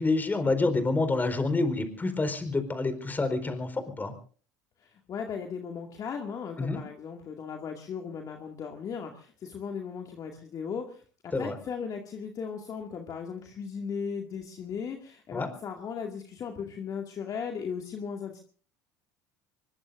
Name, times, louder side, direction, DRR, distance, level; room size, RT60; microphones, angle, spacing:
voice 1, 0.0-4.1 6.6-6.8 11.3-11.5 15.3-15.5, left 3 dB, 20° left, 8 dB, 4.5 m, -28 dB
voice 2, 4.8-18.4, left 6 dB, 45° left, 2 dB, 2.3 m, -37 dB
24.5 x 22.0 x 2.6 m, 0.42 s
hypercardioid pair, 75°, 9 cm